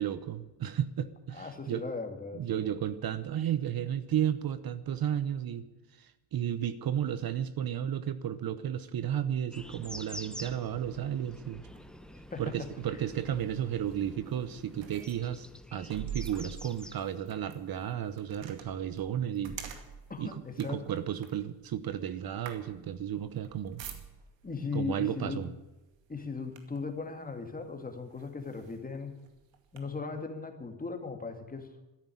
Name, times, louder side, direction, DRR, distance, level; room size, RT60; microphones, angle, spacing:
voice 1, 0.0-1.8 2.3-5.6 5.9-11.6 12.4-19.6 20.2-23.8 24.7-25.5, right 10 dB, 50° right, 13 dB, 0.9 m, -33 dB
voice 2, 1.3-2.8 12.3-12.4 12.9-13.0 20.1-20.8 24.4-25.4 26.1-29.1 29.7-31.7, left 4 dB, 20° left, 5 dB, 2.3 m, -38 dB
sound 1, 9.5-18.0, equal, ahead, 0.8 m, -48 dB
sound 2, 11.7-24.5 25.3-25.6 25.9-27.0 27.6-27.7 28.1-29.8, right 8 dB, 70° right, 2.4 m, -47 dB
13.5 x 10.5 x 9.9 m, 1.0 s
cardioid pair, 120°, 45 cm